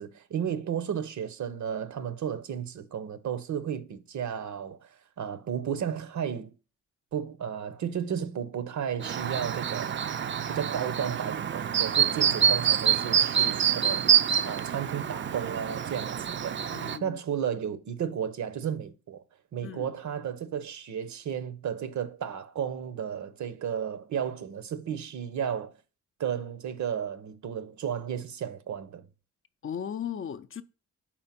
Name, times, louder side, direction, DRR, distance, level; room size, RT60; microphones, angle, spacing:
voice 1, 0.0-6.5 7.1-10.0 10.5-16.6 17.0-19.2 19.5-25.7 26.2-29.1, right 8 dB, 70° right, 0.8 m, -33 dB
Chirp tweet, 9.0-17.0, right 8 dB, 40° right, 0.4 m, -26 dB
voice 2, 16.7-17.2 19.6-19.9 29.6-30.6, left 8 dB, 45° left, 0.5 m, -37 dB
4.4 x 4.3 x 5.8 m
cardioid pair, 90°, 30 cm